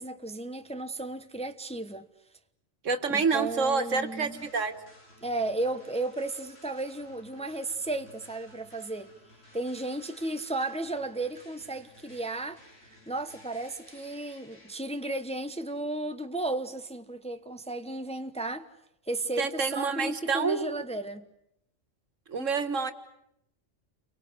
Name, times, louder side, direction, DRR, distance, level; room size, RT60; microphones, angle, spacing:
voice 1, 0.0-2.1 3.1-4.5 5.2-9.1 9.5-12.6 13.1-18.7 19.1-21.3, right 2 dB, 5° left, 1.0 m, -34 dB
voice 2, 2.8-4.7 19.4-20.6 22.3-22.9, right 5 dB, 75° right, 2.1 m, -28 dB
sound 1, 3.1-14.8, left 1 dB, 70° left, 7.6 m, -56 dB
30.0 x 24.0 x 7.9 m
omnidirectional pair, 1.3 m